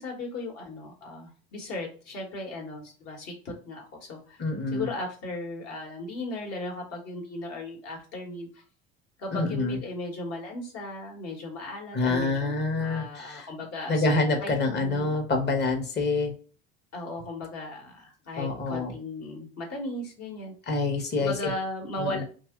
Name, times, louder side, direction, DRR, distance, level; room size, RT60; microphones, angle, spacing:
voice 1, 0.0-4.4 4.7-8.6 9.2-14.0 14.4-15.2 16.9-20.5 21.2-22.2, left 2 dB, 55° left, 0 dB, 1.4 m, -36 dB
voice 2, 4.4-4.9 9.3-9.8 11.9-13.5 13.9-16.3 18.4-18.9 20.7-21.5 22.0-22.2, left 3 dB, 35° left, 4 dB, 1.1 m, -27 dB
2.8 x 2.6 x 3.6 m, 0.39 s
hypercardioid pair, 70°, 30 cm